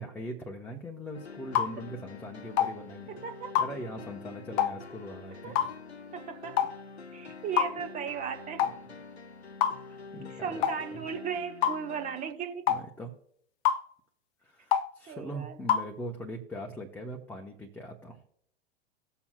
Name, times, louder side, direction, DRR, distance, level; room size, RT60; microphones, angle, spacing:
voice 1, 0.0-3.1 3.6-5.7 7.3-7.6 8.6-8.7 9.8-10.6 10.9-11.0 12.7-13.1 14.4-18.2, equal, 5° left, 0.9 m, -41 dB
sound 1, 1.1-12.3, left 4 dB, 85° left, 0.8 m, -47 dB
sound 2, 1.6-1.7 2.6-2.7 3.6-3.7 4.6-4.8 5.6-5.7 6.6-6.8 7.6-7.7 8.6-8.8 9.6-9.8 10.6-10.8 11.6-11.8 12.7-12.8 13.7-13.8 14.7-14.9 15.7-15.9, left 10 dB, 30° left, 0.5 m, -25 dB
voice 2, 3.1-3.6 5.4-5.6 6.1-6.7 7.1-8.6 10.4-12.7 15.1-15.8, right 7 dB, 25° right, 0.9 m, -36 dB
18.0 x 7.1 x 2.3 m
figure-of-eight pair, 95°, 32 cm